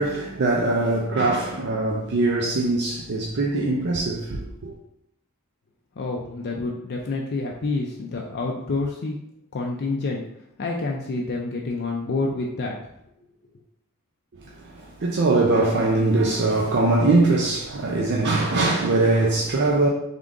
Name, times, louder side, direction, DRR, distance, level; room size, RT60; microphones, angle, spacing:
voice 1, 0.0-4.7 14.6-19.9, right 2 dB, 50° right, 0.5 m, -22 dB
voice 2, 6.0-9.2 9.5-10.2 10.6-12.8, left 3 dB, 50° left, 0.5 m, -28 dB
3.7 x 3.7 x 3.7 m
head